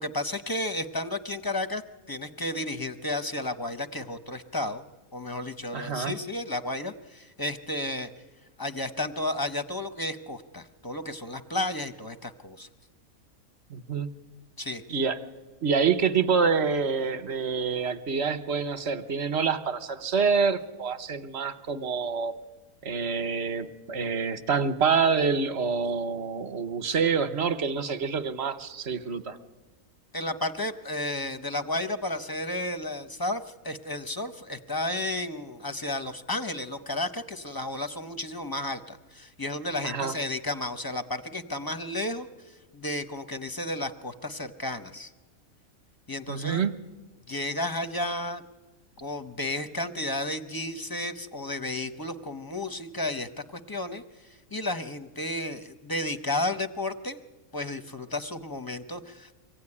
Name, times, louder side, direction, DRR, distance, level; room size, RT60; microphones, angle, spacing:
voice 1, 0.0-1.8 2.1-4.8 5.1-8.1 8.6-12.7 14.6-14.8 30.1-45.1 46.1-46.7 47.3-48.4 49.0-54.0 54.5-57.2 57.5-59.3, left 1 dB, 25° left, 10 dB, 0.4 m, -32 dB
voice 2, 5.7-6.1 13.7-14.1 14.9-15.2 15.6-22.3 22.8-29.4 39.8-40.1 46.3-46.8, right 5 dB, 50° right, 12 dB, 1.1 m, -27 dB
24.5 x 16.0 x 9.8 m, 1.3 s
omnidirectional pair, 1.5 m